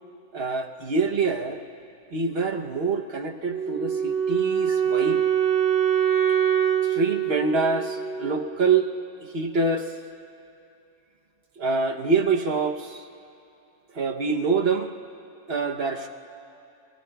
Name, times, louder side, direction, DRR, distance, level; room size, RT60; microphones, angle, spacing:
voice 1, 0.3-1.6 2.1-5.2 6.8-8.9 9.2-9.9 11.6-13.1 13.9-14.9 15.5-16.1, right 4 dB, 50° right, 1 dB, 1.0 m, -25 dB
Wind instrument woodwind instrument, 3.5-8.5, right 9 dB, 65° right, 3.0 m, -24 dB
23.0 x 22.5 x 2.3 m, 2.7 s
omnidirectional pair, 1.5 m